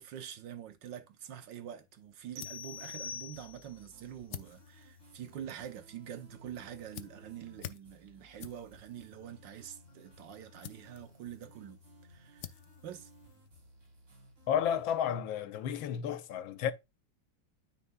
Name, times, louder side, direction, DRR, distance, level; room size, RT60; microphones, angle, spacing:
voice 1, 0.0-11.8 12.1-13.1, right 9 dB, 70° right, 1.5 m, -46 dB
sound 1, 1.8-13.9, left 11 dB, 70° left, 1.1 m, -52 dB
sound 2, 2.4-3.9, left 6 dB, 90° right, 1.7 m, -44 dB
sound 3, 2.7-14.9, left 1 dB, 45° right, 3.3 m, -59 dB
voice 2, 14.5-16.7, left 9 dB, 90° left, 1.5 m, -32 dB
13.0 x 4.3 x 2.2 m
omnidirectional pair, 2.1 m